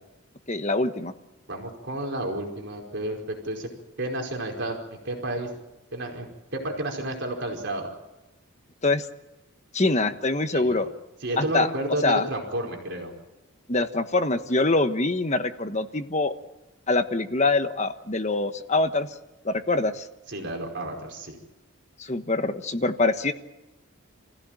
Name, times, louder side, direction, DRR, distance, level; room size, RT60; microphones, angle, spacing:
voice 1, 0.5-1.1 8.8-9.1 9.7-10.9 11.4-11.7 12.0-12.3 13.7-16.3 16.9-19.2 19.4-20.1 22.0-23.3, left 2 dB, 30° left, 8 dB, 1.3 m, -24 dB
voice 2, 1.5-3.7 4.0-5.5 5.9-6.3 6.5-7.9 10.5-10.8 11.2-13.1 20.3-21.4, right 1 dB, 55° right, 2 dB, 5.0 m, -31 dB
27.5 x 16.0 x 9.1 m, 1.0 s
head